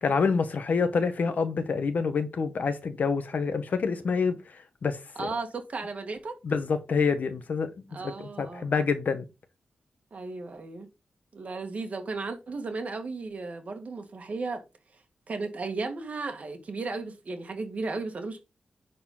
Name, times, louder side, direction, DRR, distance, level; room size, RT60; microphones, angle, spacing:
voice 1, 0.0-4.3 4.8-5.3 6.4-7.7 8.0-8.1 8.4-9.3, left 5 dB, 65° left, 1.2 m, -27 dB
voice 2, 5.2-6.4 7.9-8.7 10.1-10.9 11.3-14.6 14.9-15.0 15.3-18.4, right 3 dB, 50° right, 1.8 m, -35 dB
10.0 x 4.2 x 3.9 m
wide cardioid pair, 145°, 3 cm